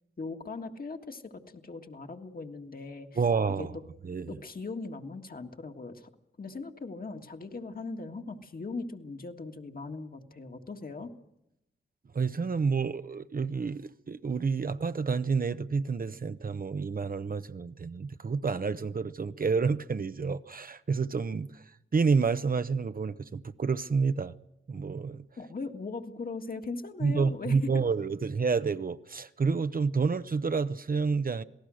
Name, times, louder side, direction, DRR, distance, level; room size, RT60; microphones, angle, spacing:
voice 1, 0.2-3.1 3.6-3.7 4.3-6.1 6.4-11.1 25.4-27.9, left 3 dB, 50° left, 1.8 m, -39 dB
voice 2, 3.2-3.8 4.0-4.4 12.1-24.3 24.7-25.3 27.0-31.4, right 5 dB, 45° right, 0.7 m, -29 dB
27.5 x 18.5 x 6.3 m
wide cardioid pair, 105°, 20 cm